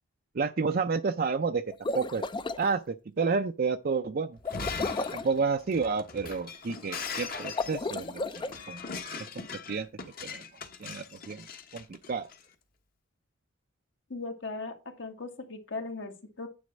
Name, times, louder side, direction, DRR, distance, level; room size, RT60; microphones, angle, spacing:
voice 1, 0.3-1.6 1.9-2.2 2.6-4.4 5.1-8.8 9.5-9.9 10.2-10.4 10.8-11.4 11.7-12.3, right 5 dB, 50° right, 0.5 m, -30 dB
sound 1, 1.7-2.6 4.4-5.3 7.4-8.5, left 3 dB, 25° left, 0.4 m, -33 dB
Shatter, 4.4-12.4, left 5 dB, 50° left, 1.3 m, -40 dB
voice 2, 14.1-16.5, left 3 dB, 65° left, 1.9 m, -38 dB
9.6 x 4.2 x 6.3 m
head